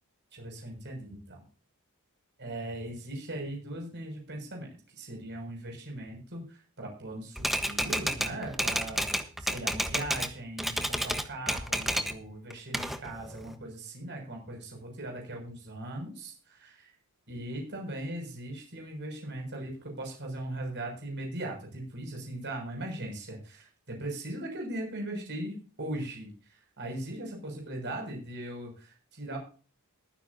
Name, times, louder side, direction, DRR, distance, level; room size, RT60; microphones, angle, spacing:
voice 1, 0.3-1.4 2.4-4.7 5.0-9.1 9.4-16.9 17.3-29.4, right 1 dB, 55° right, 1 dB, 6.7 m, -39 dB
Typewriter, 7.4-10.3 10.6-12.2 12.5-13.5, equal, ahead, 1.3 m, -31 dB
21.5 x 9.9 x 2.8 m, 0.37 s
head